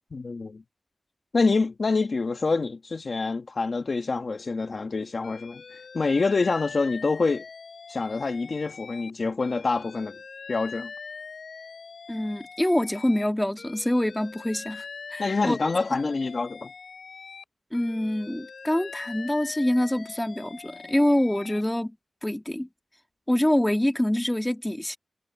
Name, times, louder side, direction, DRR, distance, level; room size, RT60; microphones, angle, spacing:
voice 1, 0.1-0.6 1.3-7.4 7.9-10.2 10.5-10.9 15.2-16.7, left 3 dB, 50° left, 1.5 m, -26 dB
Alarm, 5.2-9.1 9.4-13.3 13.6-17.4 17.7-21.6, left 5 dB, 75° left, 7.8 m, -43 dB
voice 2, 12.1-14.9 15.1-15.6 17.7-22.0 22.2-22.7 23.3-25.0, left 1 dB, 10° left, 1.8 m, -25 dB
wide cardioid pair, 125°, 0 cm